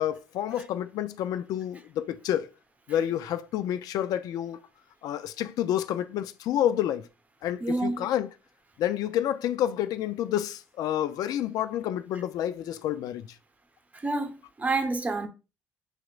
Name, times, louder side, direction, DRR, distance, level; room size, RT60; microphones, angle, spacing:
voice 1, 0.0-2.5 2.9-4.6 5.0-7.1 7.4-8.3 8.8-13.3, left 11 dB, 65° left, 0.3 m, -29 dB
voice 2, 7.6-8.1 13.9-15.3, right 2 dB, 20° right, 0.9 m, -28 dB
6.3 x 2.9 x 2.4 m
supercardioid pair, 70°, 7 cm